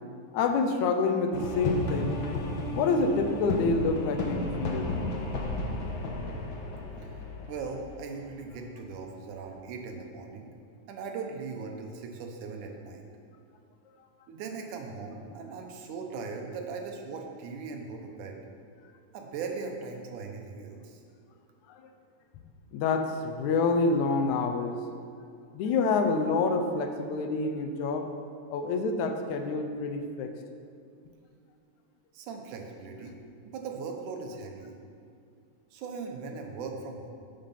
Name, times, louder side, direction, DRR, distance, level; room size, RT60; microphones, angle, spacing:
voice 1, 0.3-2.2 2.7-4.9 21.7-21.9 22.7-24.8 25.5-28.1 28.5-30.3, left 4 dB, 80° left, 6 dB, 2.0 m, -27 dB
sound 1, 1.3-8.8, left 2 dB, 55° left, 1.5 m, -33 dB
voice 2, 7.5-10.5 10.9-13.0 14.3-18.4 19.1-21.0 32.1-33.2 33.5-34.8 35.7-37.1, right 4 dB, 90° right, 3 dB, 2.5 m, -39 dB
9.0 x 6.7 x 5.7 m, 2.3 s
omnidirectional pair, 3.4 m